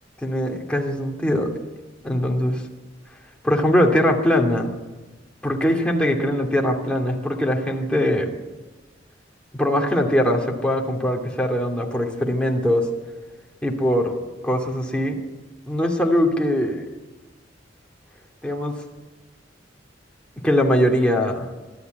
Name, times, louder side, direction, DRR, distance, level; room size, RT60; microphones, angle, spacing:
voice 1, 0.2-1.5 2.0-2.6 3.4-4.7 5.4-8.3 9.5-12.9 13.6-14.2 14.4-15.2 15.7-16.9 18.4-18.8 20.4-21.5, equal, 5° left, 0 dB, 2.5 m, -21 dB
25.0 x 12.0 x 9.3 m, 1.2 s
head